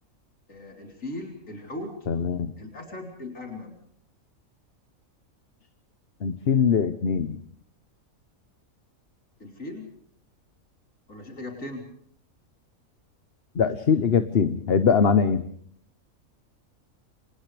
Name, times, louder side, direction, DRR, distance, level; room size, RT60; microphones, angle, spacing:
voice 1, 0.5-1.9 2.6-3.8 9.4-9.9 11.1-11.9, left 1 dB, 65° left, 1 dB, 4.3 m, -38 dB
voice 2, 2.1-2.5 6.2-7.4 13.5-15.5, left 6 dB, 50° left, 10 dB, 1.1 m, -22 dB
28.5 x 27.0 x 3.4 m, 0.62 s
omnidirectional pair, 1.4 m